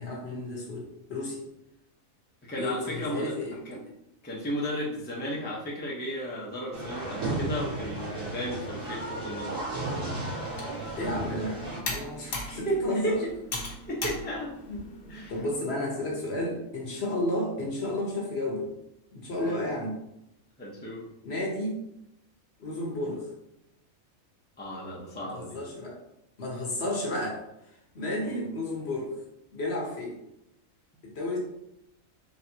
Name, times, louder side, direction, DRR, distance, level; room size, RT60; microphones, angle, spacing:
voice 1, 0.0-1.4 2.6-3.5 11.0-13.2 14.7-14.8 15.1-18.7 19.1-20.0 21.2-21.8 22.6-23.3 25.2-26.0 26.4-27.4 27.9-29.1 29.5-30.1 31.0-31.4, left 1 dB, 55° left, -1 dB, 1.2 m, -32 dB
voice 2, 2.5-3.3 3.7-3.8 4.2-9.6 12.4-13.1 13.7-14.5 15.1-15.3 19.4-19.6 20.6-21.0 24.6-25.6 28.2-28.4, equal, 10° left, -4 dB, 0.6 m, -34 dB
sound 1, 6.7-11.8, right 2 dB, 75° right, 2.2 m, -34 dB
Computer keyboard, 10.4-15.6, left 2 dB, 70° left, 1.4 m, -39 dB
4.6 x 3.4 x 2.8 m, 0.82 s
omnidirectional pair, 1.4 m